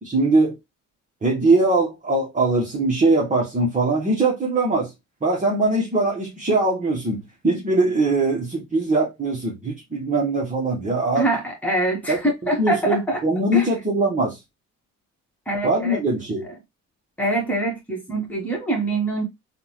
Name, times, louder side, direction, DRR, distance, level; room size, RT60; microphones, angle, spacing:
voice 1, 0.0-0.6 1.2-4.9 5.2-7.2 7.4-11.2 12.1-12.2 12.6-14.4 15.6-16.5, right 2 dB, 25° right, 1.2 m, -21 dB
voice 2, 11.2-13.2 13.5-13.7 15.5-16.0 16.4-16.5 17.2-19.2, right 2 dB, 5° left, 1.6 m, -24 dB
3.7 x 2.4 x 3.0 m
cardioid pair, 90°, 30 cm